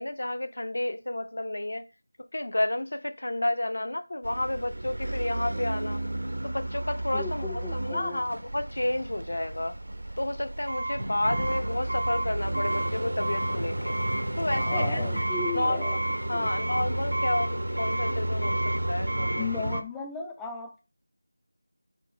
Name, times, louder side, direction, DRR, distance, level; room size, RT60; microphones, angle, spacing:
voice 1, 0.0-1.8 2.3-6.0 6.4-9.8 10.2-13.9 14.4-15.0 15.5-15.8 16.3-19.5, left 1 dB, 65° left, 0.6 m, -31 dB
sound 1, 4.2-19.8, right 1 dB, 85° right, 0.6 m, -31 dB
voice 2, 7.1-8.3 14.5-16.0 16.3-16.5 19.4-20.8, left 4 dB, 5° left, 0.3 m, -35 dB
4.5 x 2.6 x 4.5 m
figure-of-eight pair, 175°, 0 cm